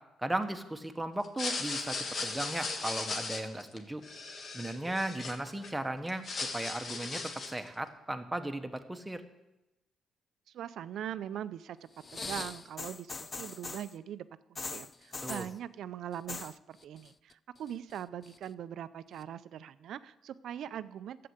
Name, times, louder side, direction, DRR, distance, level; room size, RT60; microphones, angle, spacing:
voice 1, 0.2-2.0 2.2-4.0 4.5-9.2 15.2-15.5, right 1 dB, 10° right, 6 dB, 1.1 m, -36 dB
sound 1, 1.2-5.7 6.1-7.7, left 3 dB, 50° left, 1.5 m, -37 dB
voice 2, 10.5-11.8 12.1-21.2, right 10 dB, 75° right, 14 dB, 0.5 m, -41 dB
sound 2, 12.0-13.9 14.6-15.5 16.1-16.6 16.8-17.3 17.7-18.4 19.2-19.3, left 4 dB, 30° left, 0.4 m, -41 dB
11.5 x 7.7 x 7.9 m, 0.97 s
cardioid pair, 90°, 0 cm